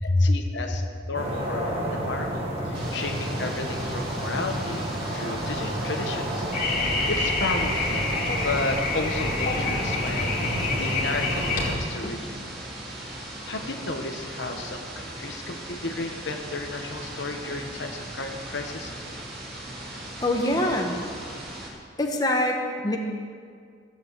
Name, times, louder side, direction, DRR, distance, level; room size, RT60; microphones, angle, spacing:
voice 1, 0.0-6.5 7.1-8.1 8.4-12.2 13.5-18.9, left 3 dB, 65° left, 4 dB, 1.1 m, -33 dB
sound 1, 1.1-11.8, right 1 dB, 30° right, 2.2 m, -31 dB
sound 2, 2.7-21.7, right 1 dB, 55° right, 3.0 m, -39 dB
sound 3, 6.5-11.7, left 3 dB, 45° left, 2.5 m, -27 dB
voice 2, 20.2-21.0 22.0-23.0, left 1 dB, 20° left, 1 dB, 1.3 m, -24 dB
14.5 x 7.7 x 7.8 m, 2.1 s
head